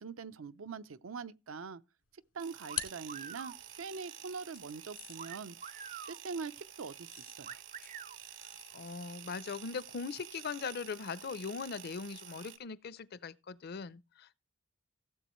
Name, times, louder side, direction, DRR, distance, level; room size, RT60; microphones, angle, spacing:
voice 1, 0.0-1.8 2.3-5.6 6.1-7.6, right 5 dB, 85° right, 0.6 m, -43 dB
sound 1, 2.0-3.8 4.5-12.1, left 15 dB, 85° left, 2.2 m, -50 dB
sound 2, 2.4-12.6, right 10 dB, 65° right, 1.1 m, -50 dB
sound 3, 2.7-3.6 5.2-6.2 7.4-8.2, right 7 dB, 40° right, 0.5 m, -46 dB
voice 2, 8.7-14.4, left 5 dB, 50° left, 0.5 m, -40 dB
17.0 x 7.7 x 3.1 m
head